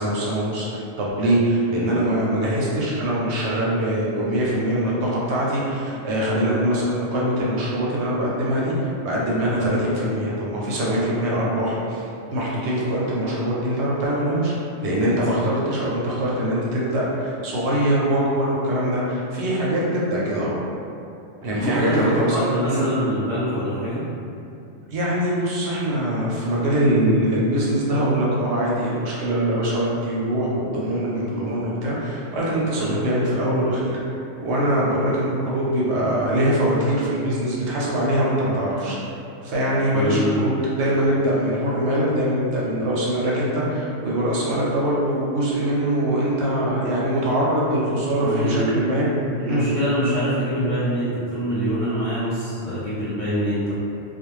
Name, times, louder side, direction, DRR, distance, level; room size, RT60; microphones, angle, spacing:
voice 1, 0.0-14.5 14.8-20.6 21.4-22.9 24.9-34.0 34.4-39.0 39.4-49.0 49.5-49.7, right 1 dB, 65° right, -6 dB, 0.8 m, -23 dB
voice 2, 21.5-24.0 32.8-32.9 39.9-40.5 48.2-48.9 49.4-53.7, equal, 55° left, -13 dB, 0.3 m, -25 dB
2.4 x 2.1 x 3.0 m, 2.6 s
omnidirectional pair, 1.3 m